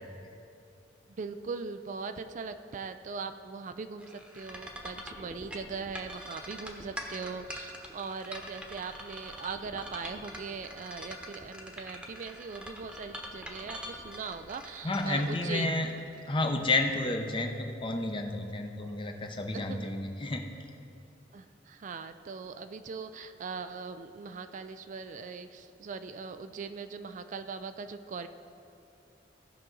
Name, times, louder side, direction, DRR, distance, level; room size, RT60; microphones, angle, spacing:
voice 1, 1.2-15.8 19.5-20.0 21.3-28.3, right 5 dB, 45° right, 9 dB, 0.4 m, -40 dB
sound 1, 4.0-16.6, equal, 5° right, 1.1 m, -43 dB
voice 2, 14.8-15.9 16.3-20.4, left 2 dB, 30° left, 4 dB, 0.7 m, -31 dB
16.5 x 6.0 x 3.9 m, 2.7 s
head